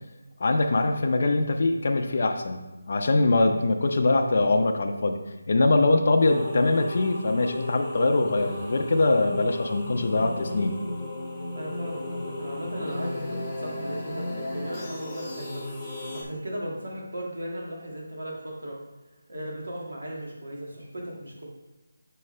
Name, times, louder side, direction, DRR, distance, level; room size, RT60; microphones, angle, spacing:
voice 1, 0.4-5.2 5.5-10.8, left 2 dB, 50° left, 4 dB, 0.6 m, -23 dB
sound 1, 6.2-16.2, left 1 dB, 5° left, 0.9 m, -35 dB
voice 2, 11.5-15.6 16.1-18.8 19.3-21.4, equal, 85° right, -3 dB, 2.0 m, -36 dB
6.6 x 4.6 x 3.2 m, 1.1 s
figure-of-eight pair, 170°, 0 cm